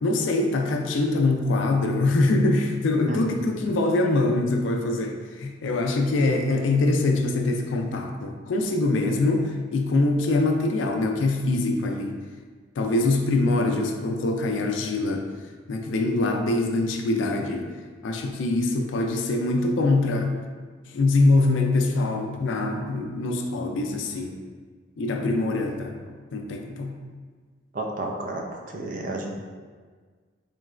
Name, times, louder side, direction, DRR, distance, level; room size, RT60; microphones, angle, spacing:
voice 1, 0.0-12.2 12.8-15.3 15.7-17.7 18.0-20.3 20.9-24.4 25.0-25.9 26.3-27.0, left 2 dB, 80° left, 4 dB, 0.4 m, -24 dB
voice 2, 27.7-29.3, right 2 dB, 45° right, 1 dB, 0.4 m, -31 dB
3.8 x 3.1 x 2.4 m, 1.6 s
head